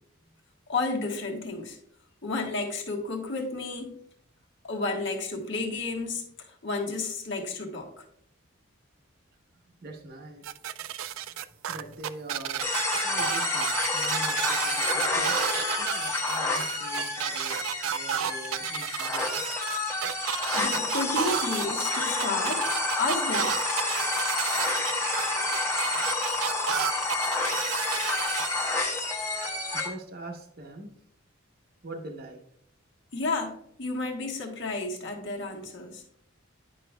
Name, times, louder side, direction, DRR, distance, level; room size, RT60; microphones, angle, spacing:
voice 1, 0.7-1.8 2.2-4.0 4.6-8.0 20.3-22.7 23.0-23.5 33.1-36.0, left 3 dB, 60° left, 1 dB, 1.4 m, -32 dB
voice 2, 9.8-10.4 11.7-15.3 15.8-19.4 29.8-30.9 31.8-32.4, right 2 dB, 50° right, 2 dB, 0.8 m, -43 dB
sound 1, 10.4-28.5, right 10 dB, 75° right, 0.3 m, -32 dB
sound 2, 12.6-29.9, left 2 dB, 10° left, 1.0 m, -29 dB
9.9 x 5.7 x 2.2 m, 0.70 s
head